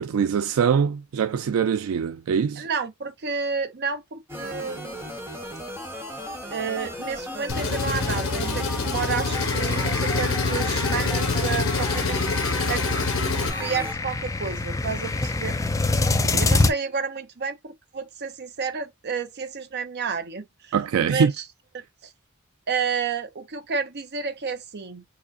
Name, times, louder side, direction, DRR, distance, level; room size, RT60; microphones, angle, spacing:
voice 1, 0.0-2.7 16.1-16.4 20.7-21.3, right 7 dB, 75° right, 0.3 m, -23 dB
voice 2, 2.6-5.0 6.5-12.2 12.7-12.8 13.5-15.6 16.4-21.3 21.7-22.1 22.7-25.0, right 5 dB, 50° right, 0.7 m, -30 dB
sound 1, 4.3-13.9, equal, 10° right, 1.3 m, -35 dB
Engine, 7.5-13.5, left 3 dB, 75° left, 1.1 m, -26 dB
sound 2, 9.3-16.7, left 3 dB, 15° left, 0.4 m, -27 dB
4.9 x 2.4 x 2.5 m
head